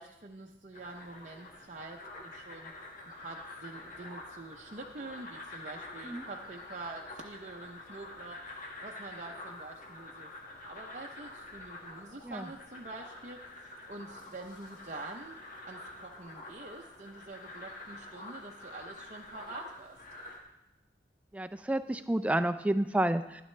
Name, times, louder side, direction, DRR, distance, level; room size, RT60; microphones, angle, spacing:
voice 1, 0.0-2.7 3.1-8.4 8.8-13.4 13.9-15.4 15.6-20.0, right 2 dB, 40° right, 1 dB, 0.6 m, -46 dB
sound 1, 0.7-20.4, left 2 dB, 45° left, 1.7 m, -47 dB
voice 2, 21.3-23.4, right 1 dB, 10° right, 10 dB, 0.3 m, -30 dB
12.0 x 11.0 x 3.2 m, 0.92 s
head